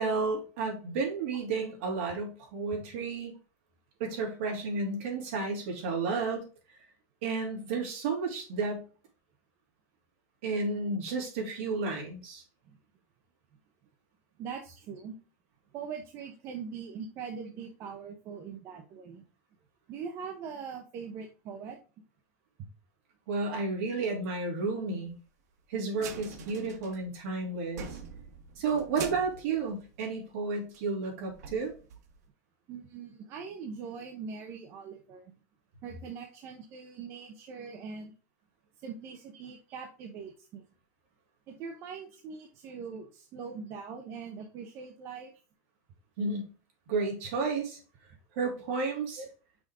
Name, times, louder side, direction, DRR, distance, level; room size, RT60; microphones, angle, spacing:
voice 1, 0.0-3.3 4.0-6.4 7.2-8.9 10.4-12.4 23.3-25.2 25.7-28.0 28.6-31.7 46.2-46.5 46.9-47.8 48.3-49.2, right 4 dB, 55° right, 0 dB, 3.1 m, -32 dB
voice 2, 14.4-15.2 15.7-19.2 19.9-21.8 22.6-22.7 32.7-35.3 35.8-38.1 38.8-40.6 41.5-45.3 49.2-49.3, right 6 dB, 30° right, 3 dB, 0.8 m, -42 dB
sound 1, 25.9-27.4 27.7-30.4 30.7-30.8 31.3-32.3, right 7 dB, 85° right, 1.4 m, -44 dB
6.2 x 5.2 x 3.6 m, 0.35 s
supercardioid pair, 175°, 9 cm